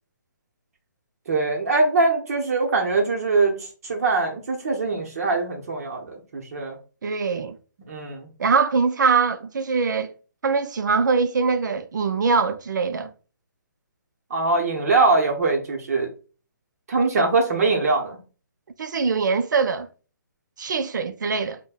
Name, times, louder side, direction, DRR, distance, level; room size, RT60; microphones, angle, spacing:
voice 1, 1.3-6.8 7.9-8.3 14.3-16.1 16.9-18.2, right 3 dB, 55° right, 0.8 m, -22 dB
voice 2, 7.0-7.6 8.4-10.1 10.4-13.1 18.8-19.9 20.6-21.6, right 5 dB, 75° right, 0.5 m, -22 dB
5.2 x 2.1 x 2.3 m
hypercardioid pair, 155°, 10 cm